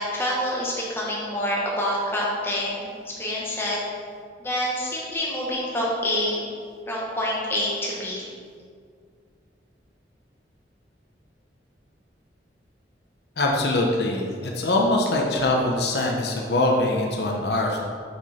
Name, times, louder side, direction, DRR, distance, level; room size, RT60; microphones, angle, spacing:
voice 1, 0.0-2.9 3.2-3.8 4.4-6.4 6.9-8.3, left 1 dB, 15° left, -5 dB, 1.3 m, -27 dB
voice 2, 13.4-17.8, left 2 dB, 70° left, -1 dB, 0.9 m, -23 dB
6.2 x 6.1 x 4.3 m, 2.1 s
head